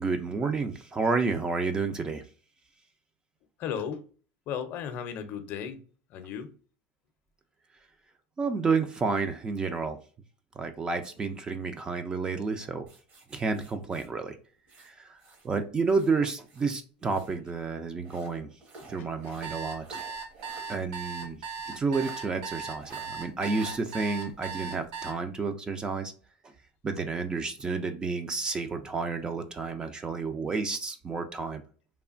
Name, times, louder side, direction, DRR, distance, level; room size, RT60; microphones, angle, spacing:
voice 1, 0.0-2.2 8.4-10.0 10.6-12.9 13.3-14.4 14.8-18.5 18.9-20.0 20.7-21.4 21.7-26.1 26.4-26.5 26.8-31.6, right 4 dB, 20° right, 0.3 m, -30 dB
voice 2, 3.6-4.0 4.5-5.8 6.1-6.5 19.3-19.4, left 8 dB, 45° left, 0.5 m, -35 dB
sound 1, 12.9-15.5 15.8-17.4 18.0-20.8 21.1-21.2 21.9-22.2 22.8-23.1 23.5-23.8, right 3 dB, 45° right, 1.0 m, -51 dB
sound 2, 19.2-25.1, right 5 dB, 65° right, 0.6 m, -38 dB
3.1 x 2.1 x 2.4 m
supercardioid pair, 135°, 4 cm